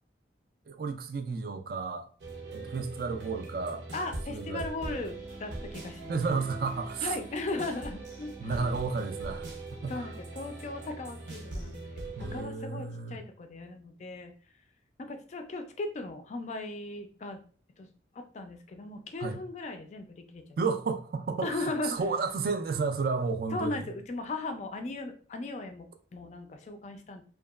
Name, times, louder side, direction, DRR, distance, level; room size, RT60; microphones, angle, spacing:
voice 1, 0.7-2.1 2.5-3.8 4.3-4.6 6.1-7.2 8.4-9.5 9.8-10.2 12.2-13.2 19.2-19.4 20.6-23.9, right 4 dB, 55° right, 0.3 m, -32 dB
sound 1, 2.2-12.4, right 2 dB, 85° right, 0.7 m, -41 dB
voice 2, 3.9-6.2 7.0-8.6 9.9-11.8 12.3-14.3 15.0-17.4 17.8-17.9 18.3-20.6 21.4-22.0 23.5-27.2, left 2 dB, 40° left, 0.3 m, -37 dB
2.8 x 2.2 x 2.3 m
head